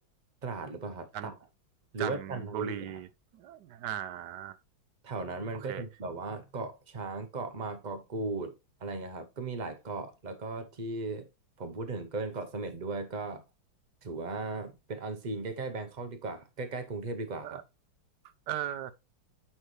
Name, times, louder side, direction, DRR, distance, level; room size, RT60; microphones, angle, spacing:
voice 1, 0.4-1.3 1.9-3.0 5.0-8.5 8.8-11.3 11.6-13.4 14.0-17.6, right 3 dB, 50° right, 0.5 m, -37 dB
voice 2, 2.0-3.1 3.3-4.6 5.7-5.8 17.4-17.6 18.5-18.9, right 11 dB, 70° right, 1.1 m, -37 dB
8.6 x 5.6 x 3.2 m
omnidirectional pair, 2.2 m